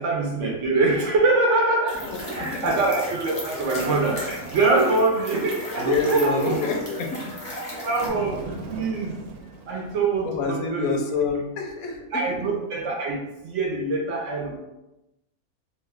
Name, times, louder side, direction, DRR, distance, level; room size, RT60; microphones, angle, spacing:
voice 1, 0.0-6.6 7.8-9.2 9.7-10.9 12.1-13.2 13.4-14.6, right 3 dB, 65° right, -1 dB, 0.8 m, -24 dB
sound 1, 1.9-8.1, left 1 dB, 35° left, 0.7 m, -36 dB
sound 2, 2.3-8.7, equal, 40° right, 0.7 m, -41 dB
Bird, 3.7-5.1 8.0-10.5, right 3 dB, 80° right, 1.1 m, -40 dB
voice 2, 5.8-7.3 10.2-12.2, left 4 dB, 70° left, 1 dB, 1.1 m, -27 dB
3.0 x 2.2 x 3.4 m, 0.93 s
omnidirectional pair, 1.6 m